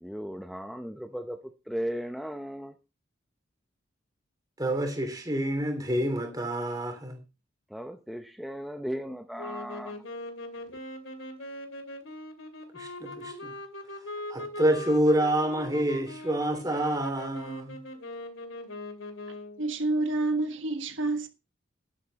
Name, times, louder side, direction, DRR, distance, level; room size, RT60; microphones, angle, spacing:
voice 1, 0.0-1.4 1.7-2.7 7.7-9.9, equal, ahead, 0.7 m, -36 dB
voice 2, 4.6-7.2 12.7-13.5 14.3-17.8, right 1 dB, 20° right, 3.1 m, -27 dB
sound 1, 9.4-19.7, left 1 dB, 85° left, 2.6 m, -41 dB
voice 3, 19.6-21.3, right 2 dB, 75° right, 1.5 m, -28 dB
11.5 x 11.0 x 4.1 m
head